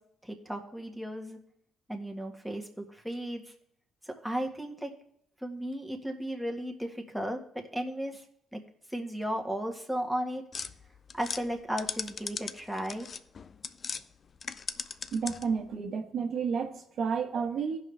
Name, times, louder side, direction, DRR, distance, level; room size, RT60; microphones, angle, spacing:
voice 1, 0.2-1.4 1.9-3.4 4.1-4.9 5.4-8.2 8.5-8.6 8.9-10.4 11.1-13.1, equal, ahead, 3 dB, 1.7 m, -35 dB
sound 1, 10.5-14.0 14.4-15.6, left 5 dB, 45° left, 0.5 m, -38 dB
voice 2, 15.1-17.8, right 6 dB, 65° right, 4 dB, 1.1 m, -31 dB
16.5 x 5.5 x 3.4 m, 0.72 s
cardioid pair, 90°, 0 cm